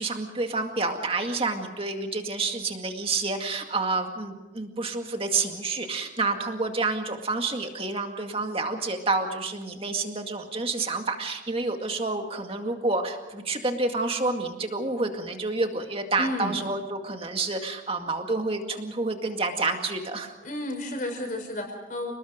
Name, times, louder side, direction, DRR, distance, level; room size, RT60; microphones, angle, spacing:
voice 1, 0.0-20.3, right 3 dB, 30° right, 4 dB, 2.1 m, -29 dB
voice 2, 16.2-16.6 20.4-22.1, left 1 dB, 40° left, 3 dB, 5.2 m, -32 dB
29.5 x 19.5 x 5.2 m, 1.1 s
head